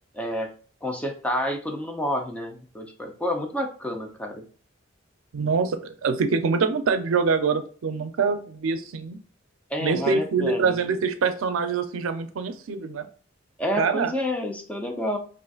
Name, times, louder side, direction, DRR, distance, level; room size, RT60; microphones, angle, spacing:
voice 1, 0.1-0.5 0.8-4.5 9.7-10.8 13.6-15.2, equal, 5° left, 3 dB, 0.5 m, -29 dB
voice 2, 5.3-9.2 9.8-13.1 13.8-14.1, right 5 dB, 85° right, 9 dB, 0.4 m, -24 dB
3.8 x 2.5 x 2.3 m, 0.41 s
head